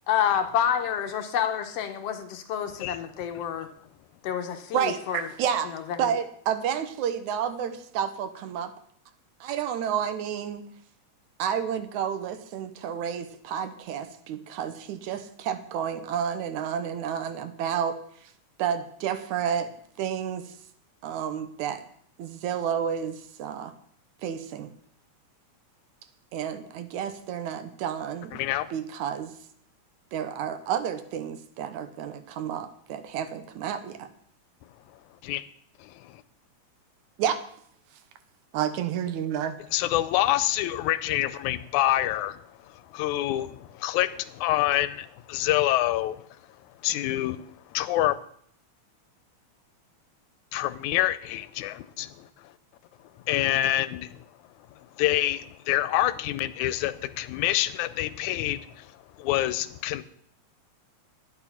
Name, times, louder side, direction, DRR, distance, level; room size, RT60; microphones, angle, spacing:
voice 1, 0.1-3.7 4.2-5.3 5.7-6.1, left 9 dB, 65° left, 7 dB, 1.7 m, -28 dB
voice 2, 4.7-5.7 6.0-8.7 9.4-10.7 11.4-18.0 18.6-19.7 20.0-20.5 21.0-21.8 22.2-23.7 24.2-24.7 26.3-28.4 28.7-29.3 30.1-34.1 37.2-37.4 38.5-39.6, right 8 dB, 90° right, 11 dB, 2.3 m, -30 dB
voice 3, 28.3-28.7 35.2-35.4 35.8-36.2 39.7-46.3 46.8-48.2 50.5-52.5 53.3-54.3 54.7-60.0, left 14 dB, 85° left, 15 dB, 2.1 m, -27 dB
11.5 x 8.8 x 5.8 m, 0.64 s
omnidirectional pair, 3.3 m